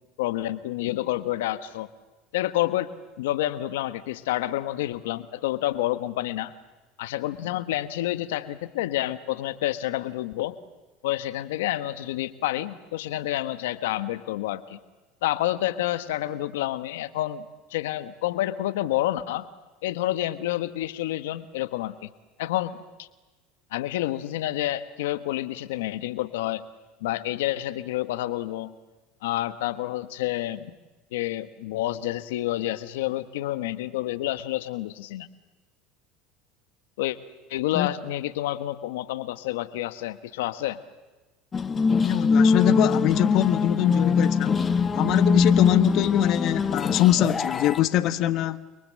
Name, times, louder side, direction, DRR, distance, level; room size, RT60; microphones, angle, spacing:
voice 1, 0.2-1.9 2.3-2.9 3.2-6.5 7.0-10.6 11.0-14.8 15.2-19.5 19.8-22.1 22.4-23.1 23.7-26.7 27.0-28.7 29.2-30.7 31.1-35.3 37.0-37.2 37.5-40.8, left 14 dB, 85° left, 1.2 m, -29 dB
sound 1, 41.5-47.8, left 5 dB, 25° left, 1.4 m, -22 dB
voice 2, 42.0-44.6 44.9-48.6, left 13 dB, 55° left, 1.2 m, -23 dB
29.5 x 23.5 x 7.5 m
supercardioid pair, 110°, 0 cm